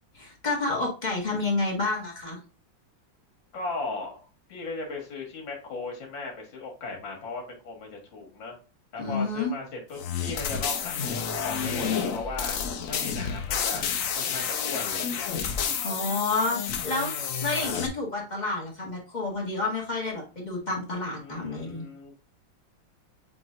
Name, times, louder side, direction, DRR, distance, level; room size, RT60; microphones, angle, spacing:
voice 1, 0.2-2.4 9.0-9.5 15.8-17.1 17.4-21.8, left 3 dB, 25° left, -3 dB, 1.6 m, -29 dB
voice 2, 3.5-8.6 8.9-12.6 12.9-13.9 14.1-15.3 17.5-17.8 21.2-22.2, left 3 dB, 85° left, 0 dB, 2.3 m, -37 dB
sound 1, 10.0-17.9, left 7 dB, 65° left, 0.8 m, -30 dB
7.2 x 2.9 x 2.4 m, 0.34 s
omnidirectional pair, 2.0 m